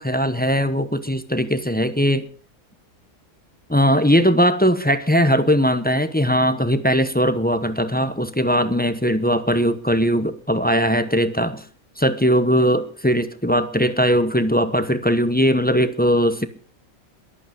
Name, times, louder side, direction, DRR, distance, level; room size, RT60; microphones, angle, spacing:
voice 1, 0.0-2.3 3.7-11.6 12.0-16.5, equal, 10° left, 11 dB, 0.7 m, -19 dB
22.5 x 8.6 x 5.4 m, 0.42 s
omnidirectional pair, 1.5 m